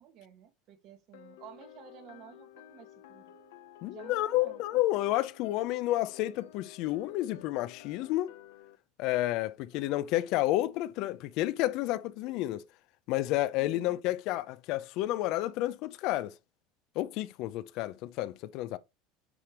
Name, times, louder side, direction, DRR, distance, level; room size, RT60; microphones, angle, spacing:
voice 1, 0.0-3.3 3.9-4.6 9.8-9.9 13.6-14.0, right 9 dB, 55° right, 1.6 m, -52 dB
sound 1, 1.1-8.8, left 11 dB, 85° left, 0.9 m, -53 dB
voice 2, 3.8-8.3 9.0-12.6 13.1-16.3 17.0-18.8, left 16 dB, 65° left, 0.6 m, -30 dB
10.0 x 3.4 x 4.3 m
supercardioid pair, 105°, 0 cm